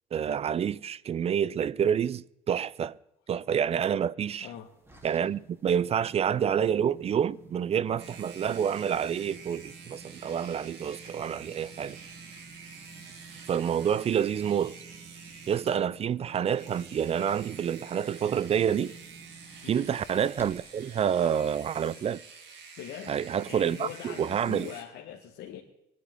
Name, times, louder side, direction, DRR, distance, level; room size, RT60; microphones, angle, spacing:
voice 1, 0.1-2.9 3.3-4.5 5.0-12.0 13.5-14.7 15.5-18.9 19.7-22.2 23.1-24.7, right 8 dB, 35° right, 0.5 m, -28 dB
voice 2, 4.4-4.7 5.0-5.3 19.6-19.9 22.8-23.2 23.5-25.6, left 10 dB, 75° left, 1.5 m, -42 dB
sound 1, 4.5-20.8, right 4 dB, 15° right, 3.2 m, -51 dB
sound 2, 8.0-15.8 16.5-24.8, right 5 dB, 85° right, 3.2 m, -48 dB
23.0 x 10.0 x 3.7 m
cardioid pair, 110°, 17 cm